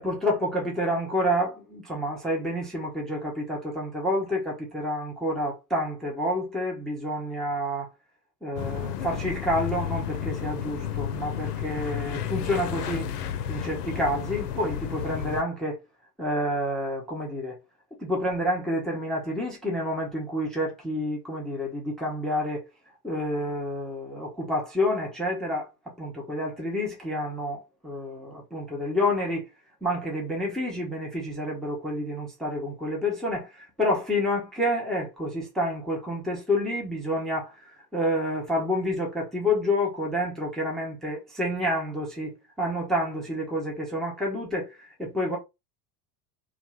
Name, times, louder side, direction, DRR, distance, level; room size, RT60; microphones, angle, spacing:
voice 1, 0.0-7.9 8.4-13.1 13.5-15.8 16.2-17.6 18.0-22.6 23.0-25.7 26.0-29.5 29.8-37.5 37.9-45.4, left 1 dB, ahead, 0.3 m, -29 dB
sound 1, 8.6-15.4, left 10 dB, 70° left, 0.6 m, -32 dB
2.3 x 2.2 x 3.0 m
figure-of-eight pair, 75°, 48 cm